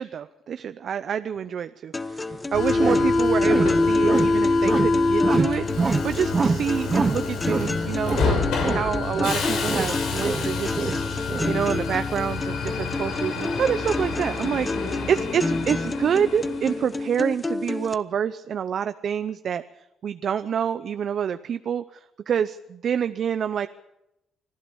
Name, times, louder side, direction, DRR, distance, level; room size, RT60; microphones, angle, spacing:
voice 1, 0.0-19.6 20.0-21.8 22.3-23.7, right 8 dB, 60° right, 11 dB, 0.7 m, -27 dB
sound 1, 1.9-17.9, left 3 dB, 20° left, 1.0 m, -31 dB
sound 2, 2.3-2.4 2.8-3.1 3.4-4.4 4.6-4.9 5.2-6.1 6.3-7.7 8.0-8.4 8.6-10.0 10.2-11.6, right 4 dB, 35° right, 1.0 m, -26 dB
Subway metro underground, 2.5-16.9, left 3 dB, 85° left, 6.1 m, -26 dB
25.0 x 15.5 x 7.1 m, 0.89 s
cardioid pair, 90°, 0 cm